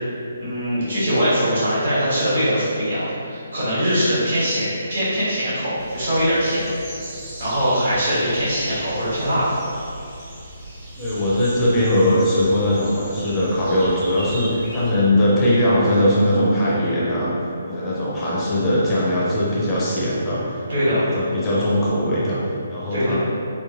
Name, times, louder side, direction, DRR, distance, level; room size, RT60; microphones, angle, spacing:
voice 1, 0.4-6.7 7.4-9.6 20.7-21.0 22.9-23.2, equal, 65° right, -11 dB, 1.4 m, -22 dB
sound 1, 5.8-14.9, right 1 dB, 25° right, 0.7 m, -37 dB
voice 2, 11.0-17.3 17.6-20.6 20.9-22.4 22.7-23.2, left 1 dB, 20° left, -7 dB, 0.5 m, -20 dB
3.0 x 2.2 x 2.4 m, 2.6 s
figure-of-eight pair, 135°, 0 cm